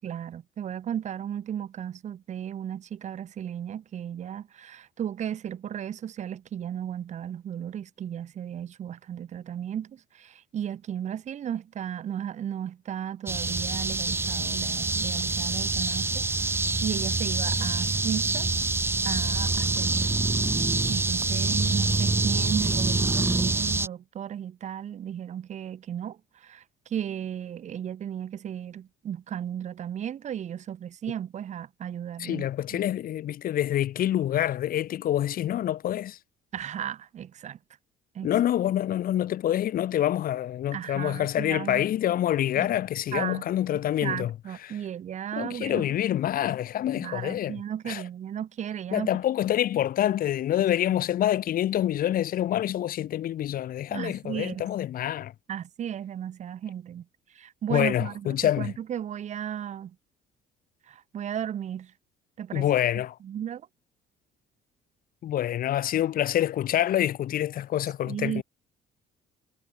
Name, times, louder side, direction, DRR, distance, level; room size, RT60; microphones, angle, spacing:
voice 1, 0.0-18.5 19.0-20.2 20.9-26.6 26.9-32.8 36.5-37.6 38.1-38.3 40.7-41.9 42.6-42.7 43.1-43.4 44.0-45.8 46.9-49.1 53.9-54.7 55.5-57.0 57.3-59.9 60.9-61.9 62.4-62.7 63.2-63.6 68.1-68.4, right 9 dB, 45° right, 0.8 m, -35 dB
sound 1, 13.3-23.9, right 3 dB, 15° right, 0.8 m, -26 dB
voice 2, 32.2-36.2 38.2-44.3 44.6-44.8 45.4-48.0 48.9-55.3 57.7-58.7 62.5-63.2 65.2-68.4, left 12 dB, 60° left, 1.5 m, -26 dB
cardioid pair, 110°, 17 cm